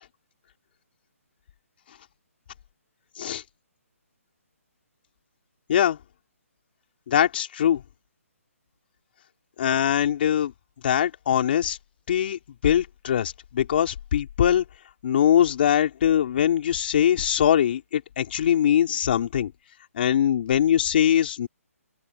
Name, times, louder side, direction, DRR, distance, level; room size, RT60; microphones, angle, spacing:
voice 1, 7.1-7.8 9.6-10.5 10.8-11.8 12.1-14.6 15.0-19.5 19.9-21.5, left 10 dB, 45° left, 3.6 m, -22 dB
open air
hypercardioid pair, 160°, 8 cm